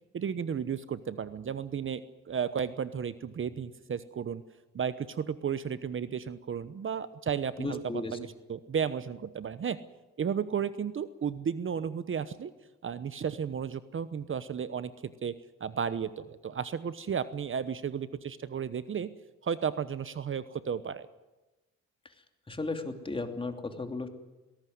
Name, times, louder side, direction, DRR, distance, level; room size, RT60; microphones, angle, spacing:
voice 1, 0.1-4.4 4.7-9.8 10.2-12.5 12.8-15.3 15.6-19.1 19.4-21.1, right 7 dB, 40° right, 14 dB, 1.0 m, -33 dB
voice 2, 7.6-8.2 22.5-24.1, left 2 dB, 15° left, 6 dB, 2.9 m, -35 dB
20.5 x 18.0 x 9.5 m, 1.1 s
cardioid pair, 90°, 30 cm